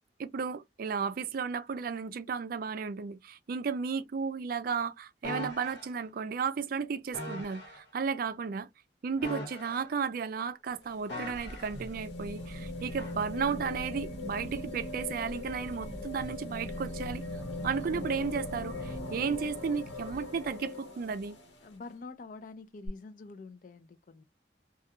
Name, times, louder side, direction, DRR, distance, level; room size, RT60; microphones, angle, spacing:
voice 1, 0.2-8.7 9.0-17.2 17.6-21.4, right 6 dB, 55° right, 0.4 m, -34 dB
sound 1, 5.2-5.9 7.1-7.8 9.2-10.1 11.1-11.8 13.0-13.2, left 1 dB, 70° left, 1.1 m, -40 dB
sound 2, 10.7-21.7 22.9-23.0, left 1 dB, 90° left, 1.1 m, -40 dB
voice 2, 21.6-24.2, left 3 dB, 50° left, 0.4 m, -46 dB
2.3 x 2.2 x 2.8 m
head